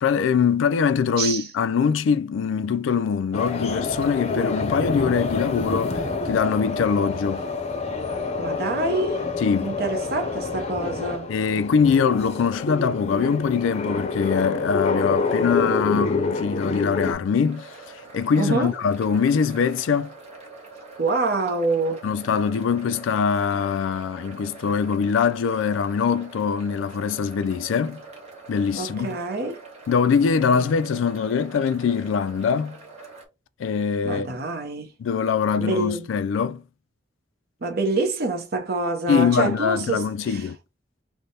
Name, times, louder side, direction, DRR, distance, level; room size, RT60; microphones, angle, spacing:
voice 1, 0.0-7.5 9.4-9.7 11.3-17.7 18.1-20.1 22.0-28.0 28.5-29.2 29.9-32.8 33.6-34.4 35.0-36.6 39.1-40.6, left 6 dB, 85° left, 0.3 m, -23 dB
voice 2, 1.2-1.5 8.4-9.2 9.6-11.3 18.4-18.7 21.0-22.0 23.5-23.6 28.8-29.6 30.5-30.7 34.0-34.9 35.6-36.1 37.6-40.5, right 3 dB, 55° right, 0.8 m, -26 dB
sound 1, 3.3-17.1, left 3 dB, 35° left, 0.6 m, -27 dB
sound 2, 17.4-33.3, right 3 dB, 35° right, 1.2 m, -44 dB
3.3 x 2.1 x 4.0 m
head